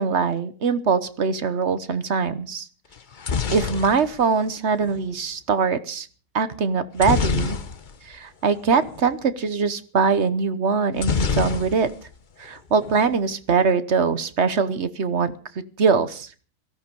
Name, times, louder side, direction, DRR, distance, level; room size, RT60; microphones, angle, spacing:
voice 1, 0.0-2.7 3.5-6.1 6.3-7.6 8.1-11.9 12.4-15.3 15.8-16.3, right 5 dB, 45° right, 13 dB, 1.2 m, -22 dB
sound 1, 2.9-5.0 7.0-8.1 8.4-8.6 8.8-9.0 11.0-12.1 12.4-13.0, left 5 dB, 35° left, 0.8 m, -26 dB
18.0 x 14.5 x 5.3 m, 0.40 s
omnidirectional pair, 1.8 m